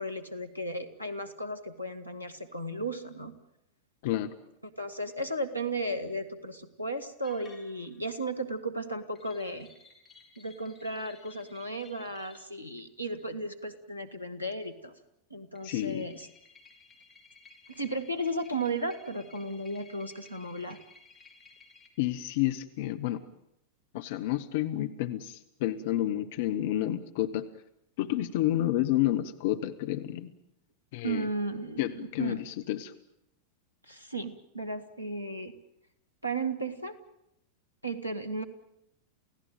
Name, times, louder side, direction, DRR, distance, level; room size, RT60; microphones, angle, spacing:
voice 1, 0.0-3.3 4.8-9.7 10.4-14.9 15.3-16.3 17.7-20.8 31.0-32.4 33.9-35.5 36.2-37.0 37.8-38.4, right 1 dB, 90° left, 5 dB, 1.9 m, -35 dB
voice 2, 4.0-4.3 15.6-16.1 22.0-23.2 23.9-27.5 28.0-30.3 30.9-31.3 31.8-32.9, left 13 dB, 50° left, 8 dB, 1.1 m, -30 dB
sound 1, 7.2-8.1 9.1-12.5 15.5-21.9, left 4 dB, 15° left, 4.9 m, -57 dB
29.5 x 17.0 x 9.1 m, 0.83 s
figure-of-eight pair, 90°, 0 cm